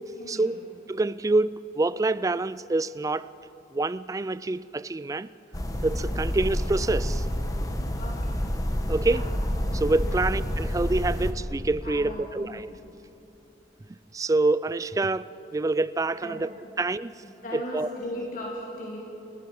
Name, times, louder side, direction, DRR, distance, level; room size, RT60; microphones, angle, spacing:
voice 1, 0.2-0.6 8.0-8.4 9.0-9.2 10.0-10.2 11.8-12.9 16.2-16.7 17.2-19.0, left 1 dB, 50° left, 3.0 m, -38 dB
voice 2, 0.9-3.3 3.7-5.3 5.8-7.2 8.9-9.2 9.7-12.7 14.1-16.5 16.8-17.1 17.5-17.9, right 2 dB, 20° right, 0.4 m, -26 dB
sound 1, 5.5-11.3, equal, 20° left, 1.4 m, -28 dB
30.0 x 16.5 x 5.5 m
head